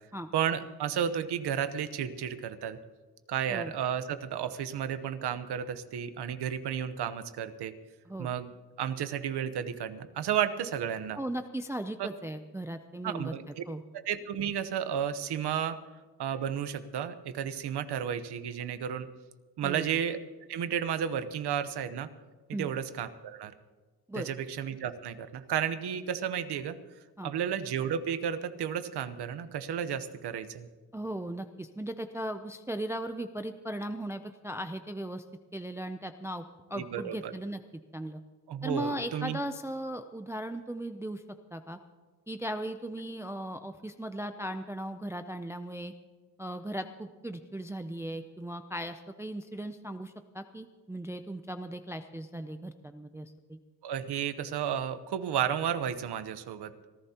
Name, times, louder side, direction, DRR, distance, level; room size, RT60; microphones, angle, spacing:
voice 1, 0.3-2.8 3.3-7.7 8.2-8.5 8.8-11.2 12.0-12.1 13.0-13.6 13.9-15.8 16.2-19.1 19.6-20.2 20.5-22.1 22.6-23.5 24.1-26.8 27.2-30.7 36.7-37.3 38.5-39.4 53.8-56.7, right 9 dB, 85° right, 11 dB, 1.0 m, -32 dB
voice 2, 11.2-13.4 13.7-13.8 19.6-19.9 22.5-22.7 24.1-24.3 27.2-27.3 30.9-35.2 35.5-36.4 36.7-37.6 37.9-38.2 38.6-41.2 41.5-41.8 42.3-45.9 46.4-53.6, right 1 dB, 5° right, 8 dB, 0.4 m, -37 dB
26.0 x 14.5 x 2.9 m, 1.4 s
wide cardioid pair, 170°, 39 cm